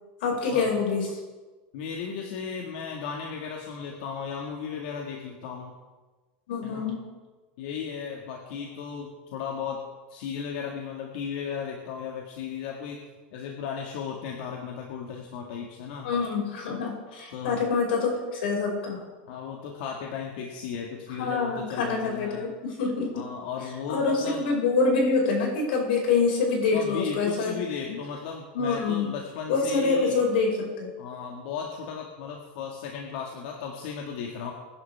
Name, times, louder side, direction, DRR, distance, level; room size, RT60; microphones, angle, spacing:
voice 1, 0.2-1.1 6.5-7.0 16.0-19.0 21.2-23.1 23.9-27.5 28.5-29.1 29.5-30.9, left 4 dB, 85° left, -1 dB, 5.5 m, -26 dB
voice 2, 1.7-5.7 6.6-6.9 7.6-9.8 10.1-13.0 13.3-16.1 17.3-17.6 19.3-22.5 23.1-24.4 26.7-30.2 31.0-34.5, left 6 dB, 65° left, 0 dB, 1.9 m, -35 dB
21.5 x 11.0 x 3.5 m, 1.3 s
supercardioid pair, 155°, 5 cm